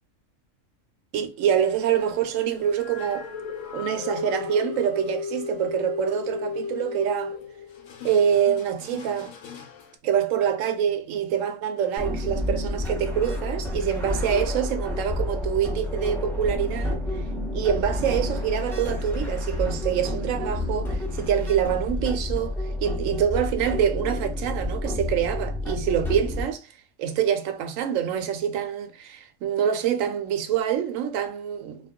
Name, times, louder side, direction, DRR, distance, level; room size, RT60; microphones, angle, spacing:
voice 1, 1.1-3.3 3.7-7.4 8.0-9.3 10.0-17.0 17.5-22.5 22.8-26.7 27.0-31.8, right 9 dB, 80° right, 0.9 m, -25 dB
sound 1, 1.7-9.9, left 5 dB, 70° left, 1.0 m, -36 dB
sound 2, 12.0-26.4, left 1 dB, ahead, 0.7 m, -29 dB
2.3 x 2.3 x 3.5 m
omnidirectional pair, 1.4 m